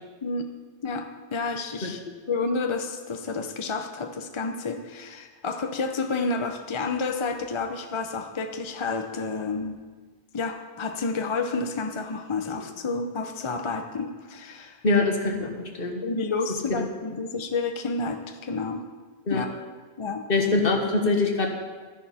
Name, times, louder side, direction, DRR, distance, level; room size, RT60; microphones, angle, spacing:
voice 1, 0.8-2.0 2.3-9.8 10.3-14.8 16.0-18.9 19.3-19.5 20.0-20.2, left 4 dB, 35° left, 6 dB, 0.6 m, -30 dB
voice 2, 14.8-15.5 15.8-16.0 16.7-16.8 19.3-19.4 20.3-21.5, left 3 dB, 65° left, 2 dB, 1.5 m, -23 dB
13.0 x 10.5 x 4.2 m, 1.4 s
omnidirectional pair, 1.0 m